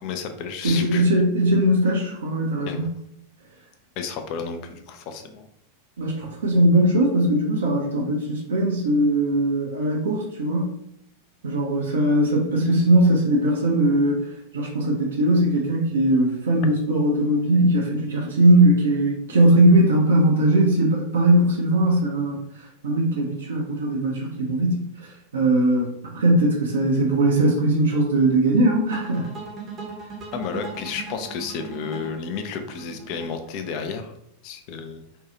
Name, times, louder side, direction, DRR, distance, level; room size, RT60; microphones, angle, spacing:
voice 1, 0.0-1.1 2.7-2.9 4.0-5.5 30.3-34.1 34.4-35.0, left 5 dB, 45° left, 6 dB, 0.4 m, -32 dB
voice 2, 0.6-2.9 6.0-10.7 11.4-14.3 14.5-22.4 22.8-29.3, right 1 dB, 65° right, -2 dB, 0.5 m, -20 dB
sound 1, 28.9-34.0, right 4 dB, 25° right, 0.7 m, -38 dB
2.6 x 2.3 x 2.8 m, 0.73 s
figure-of-eight pair, 90°, 0 cm